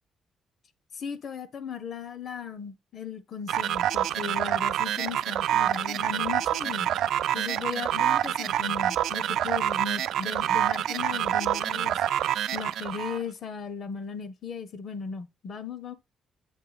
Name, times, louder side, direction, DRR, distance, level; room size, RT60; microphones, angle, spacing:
voice 1, 0.9-6.9 7.3-12.0 12.5-15.9, left 6 dB, 60° left, 0.9 m, -37 dB
sound 1, 3.5-13.2, right 11 dB, 80° right, 0.4 m, -27 dB
7.4 x 3.1 x 4.1 m
cardioid pair, 90°, 0 cm